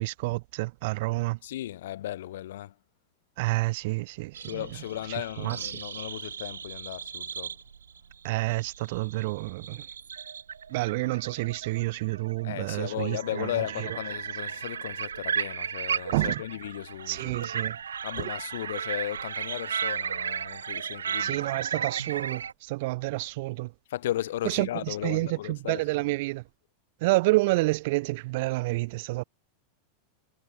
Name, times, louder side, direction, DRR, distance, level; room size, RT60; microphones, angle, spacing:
voice 1, 0.0-1.4 3.4-4.7 5.1-5.7 8.2-9.8 10.7-13.5 13.8-13.9 16.1-16.4 17.1-17.8 18.2-18.3 21.2-23.7 24.4-26.4 27.0-29.2, right 22 dB, 60° right, 2.3 m, -29 dB
voice 2, 1.4-2.7 4.4-7.6 12.4-17.4 18.0-21.4 23.9-25.8, left 13 dB, 70° left, 2.0 m, -35 dB
sound 1, 4.3-22.5, right 7 dB, 85° right, 5.9 m, -35 dB
hypercardioid pair, 95°, 0 cm